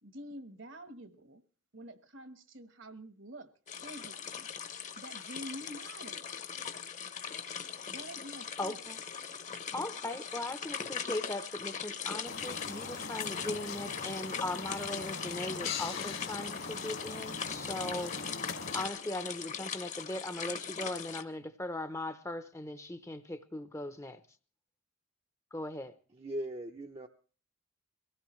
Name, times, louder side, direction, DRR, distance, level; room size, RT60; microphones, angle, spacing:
voice 1, 0.0-1.4 1.7-3.5 3.8-4.5 5.0-6.2 7.9-8.8, equal, 60° right, 1.3 m, -47 dB
sound 1, 3.7-21.2, left 7 dB, 35° left, 1.0 m, -40 dB
voice 2, 8.6-9.0 9.7-18.1 18.7-24.2 25.5-25.9, left 1 dB, 15° left, 0.7 m, -39 dB
sound 2, 12.2-18.9, left 4 dB, 65° left, 2.0 m, -41 dB
voice 3, 26.1-27.1, right 1 dB, 25° right, 0.7 m, -39 dB
23.0 x 16.5 x 3.2 m
head